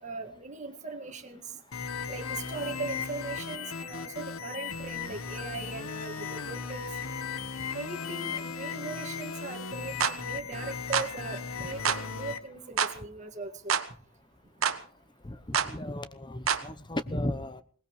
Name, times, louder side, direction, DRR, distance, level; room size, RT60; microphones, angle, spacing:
voice 1, 0.0-1.5 2.1-6.8 7.7-13.8, right 3 dB, 35° right, 3 dB, 2.0 m, -39 dB
sound 1, 1.7-12.4, left 5 dB, 85° left, 1.3 m, -37 dB
sound 2, 10.0-10.2 10.9-11.1 11.8-12.0 12.8-13.0 13.7-13.9 14.6-14.8 15.5-15.7 16.5-16.7, right 7 dB, 75° right, 1.3 m, -26 dB
voice 2, 15.2-17.6, left 1 dB, 20° left, 12 dB, 0.9 m, -35 dB
22.0 x 19.5 x 3.2 m, 0.43 s
head